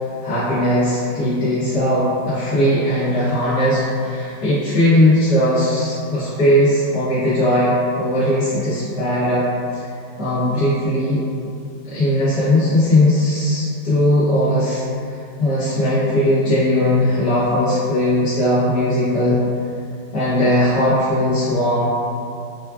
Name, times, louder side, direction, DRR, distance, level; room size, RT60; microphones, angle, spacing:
voice 1, 0.2-9.4 9.7-9.9 10.2-11.2 11.8-19.4 20.1-21.9, left 1 dB, 60° left, -14 dB, 1.3 m, -18 dB
4.6 x 2.3 x 2.3 m, 2.4 s
omnidirectional pair, 2.2 m